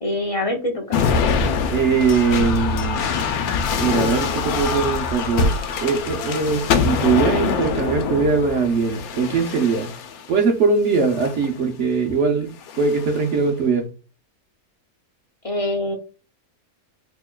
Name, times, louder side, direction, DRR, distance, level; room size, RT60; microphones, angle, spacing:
voice 1, 0.0-1.0 15.4-16.0, left 1 dB, 55° left, 3 dB, 0.3 m, -24 dB
sound 1, 0.9-10.3 11.0-11.5 12.6-13.3, left 5 dB, 85° left, 1.1 m, -24 dB
voice 2, 1.7-3.0 3.8-5.5 5.8-9.9 10.3-12.5 12.8-13.9, right 5 dB, 60° right, 3 dB, 0.9 m, -21 dB
4.5 x 2.9 x 2.2 m, 0.33 s
omnidirectional pair, 1.5 m